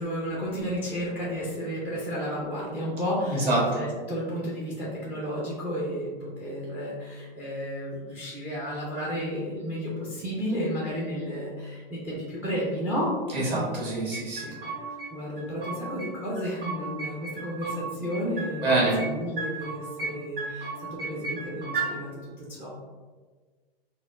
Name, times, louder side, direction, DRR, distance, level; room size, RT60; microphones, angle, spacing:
voice 1, 0.0-13.1 13.4-13.7 14.6-14.7 15.1-22.7, equal, 5° right, -5 dB, 0.4 m, -32 dB
voice 2, 3.3-3.6 13.3-14.5 18.6-19.0, right 2 dB, 35° right, -6 dB, 1.5 m, -25 dB
sound 1, 14.1-15.1 15.4-16.1 16.4-17.8 18.1-19.1 19.4-20.1 20.4-21.9, right 4 dB, 65° right, 1.4 m, -34 dB
4.1 x 2.0 x 2.4 m, 1.4 s
hypercardioid pair, 120°, 29 cm